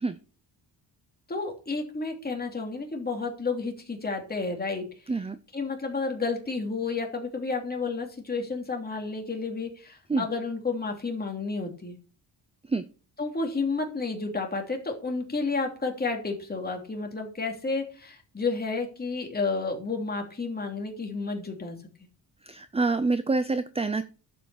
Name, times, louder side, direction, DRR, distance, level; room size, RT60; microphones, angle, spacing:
voice 1, 1.3-4.8 5.1-5.2 5.5-11.9 13.2-21.8, left 4 dB, 20° left, 2 dB, 3.0 m, -31 dB
voice 2, 22.5-24.1, right 3 dB, 15° right, 12 dB, 0.5 m, -26 dB
11.5 x 7.9 x 4.9 m, 0.37 s
wide cardioid pair, 145°, 42 cm